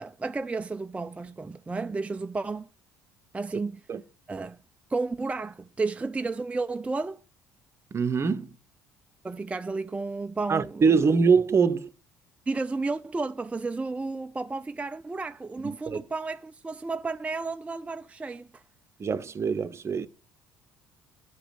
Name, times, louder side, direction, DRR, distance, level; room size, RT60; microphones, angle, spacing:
voice 1, 0.0-2.7 3.3-3.8 4.3-4.6 4.9-7.2 9.2-11.1 12.5-18.6, right 3 dB, 15° right, 0.4 m, -32 dB
voice 2, 7.9-8.6 10.5-11.9 15.6-16.0 19.0-20.1, right 5 dB, 35° right, 0.8 m, -24 dB
9.8 x 5.0 x 7.5 m
hypercardioid pair, 55°, 8 cm